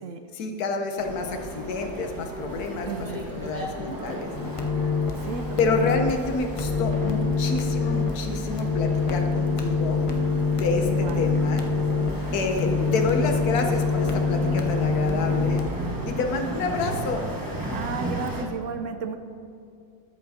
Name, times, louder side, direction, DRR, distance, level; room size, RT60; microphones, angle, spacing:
voice 1, 0.3-4.6 5.6-10.1 10.5-11.6 12.3-15.6 16.1-17.3, left 3 dB, 70° left, 5 dB, 1.4 m, -28 dB
sound 1, 1.0-18.4, right 1 dB, 15° right, 0.9 m, -35 dB
voice 2, 2.8-3.3 5.2-6.0 10.9-11.3 17.7-19.2, right 5 dB, 65° right, 7 dB, 0.9 m, -34 dB
sound 2, 4.3-15.7, left 4 dB, 55° left, 0.3 m, -25 dB
13.0 x 8.0 x 2.7 m, 2.5 s
omnidirectional pair, 1.7 m